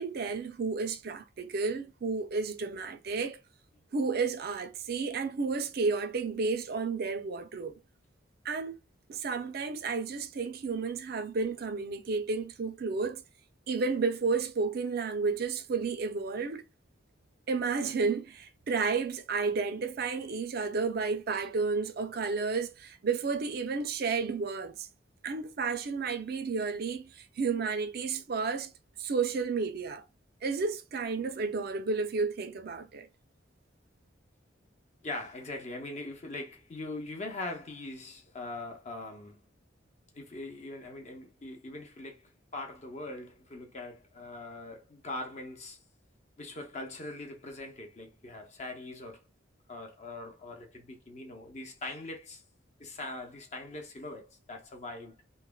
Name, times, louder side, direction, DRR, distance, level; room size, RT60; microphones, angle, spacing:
voice 1, 0.0-3.4 3.9-7.8 8.4-8.8 9.1-13.2 13.7-16.6 17.5-24.9 25.2-28.7 29.0-30.0 30.4-33.1, right 4 dB, 50° right, 0.4 m, -32 dB
voice 2, 35.0-39.4 40.1-45.8 46.4-49.2 49.7-52.4 52.8-55.1, left 2 dB, 35° left, 0.7 m, -41 dB
3.0 x 2.1 x 2.2 m
head